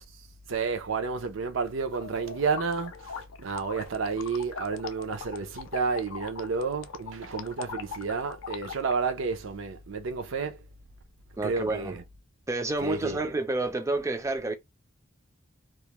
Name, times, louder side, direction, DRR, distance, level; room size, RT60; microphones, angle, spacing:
voice 1, 0.5-2.9 3.4-10.6 11.4-12.0 12.8-13.2, right 5 dB, 75° right, 0.5 m, -30 dB
sound 1, 1.9-8.9, left 6 dB, 90° left, 0.4 m, -41 dB
voice 2, 11.4-12.0 12.5-14.5, right 2 dB, 15° right, 0.3 m, -29 dB
2.3 x 2.0 x 2.8 m
head